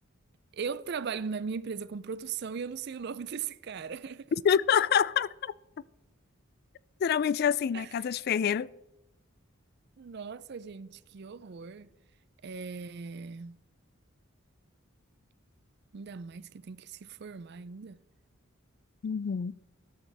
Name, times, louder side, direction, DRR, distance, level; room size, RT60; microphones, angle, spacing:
voice 1, 0.5-4.3 7.7-8.1 10.0-11.9 12.4-13.6 15.9-18.0, right 5 dB, 50° right, 0.4 m, -38 dB
voice 2, 4.4-5.5 7.0-8.7 19.0-19.6, left 8 dB, 50° left, 0.3 m, -26 dB
13.5 x 12.5 x 3.4 m
head